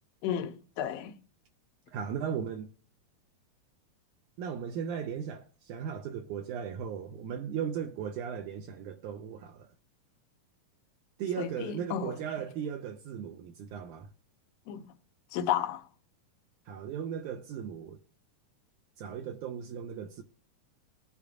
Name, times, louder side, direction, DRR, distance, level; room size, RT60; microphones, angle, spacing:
voice 1, 0.2-1.1 11.4-12.2 14.7-14.8 15.3-15.8, left 9 dB, 70° left, 1.6 m, -32 dB
voice 2, 1.9-2.7 4.4-9.7 11.2-14.1 16.7-18.0 19.0-20.2, right 8 dB, 75° right, 2.1 m, -37 dB
18.5 x 8.4 x 2.5 m
omnidirectional pair, 3.8 m